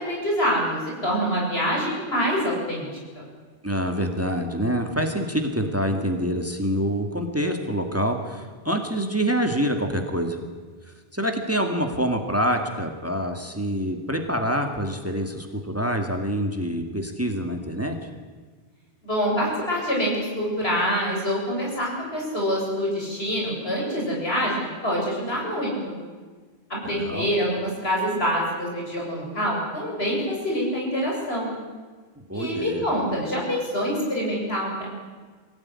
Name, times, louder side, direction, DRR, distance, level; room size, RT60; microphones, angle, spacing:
voice 1, 0.0-2.9 3.1-3.3 19.0-25.9 26.7-31.6 32.3-34.9, equal, 75° left, -2 dB, 8.0 m, -26 dB
voice 2, 3.6-10.4 11.1-18.1 26.9-27.3 32.3-32.8, equal, 15° right, 5 dB, 2.2 m, -26 dB
23.5 x 17.5 x 9.7 m, 1.5 s
omnidirectional pair, 1.1 m